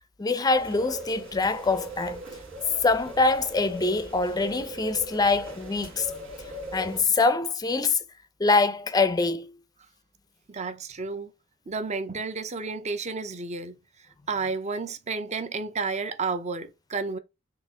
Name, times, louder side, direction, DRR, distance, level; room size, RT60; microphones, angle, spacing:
voice 1, 0.2-2.2 2.8-6.1 6.7-8.0 8.4-9.5, left 3 dB, 20° left, 0.4 m, -24 dB
sound 1, 0.5-7.0, right 1 dB, 85° right, 1.9 m, -39 dB
voice 2, 10.5-11.3 11.7-13.8 14.3-17.2, right 4 dB, 35° right, 0.6 m, -31 dB
4.1 x 2.9 x 3.6 m
head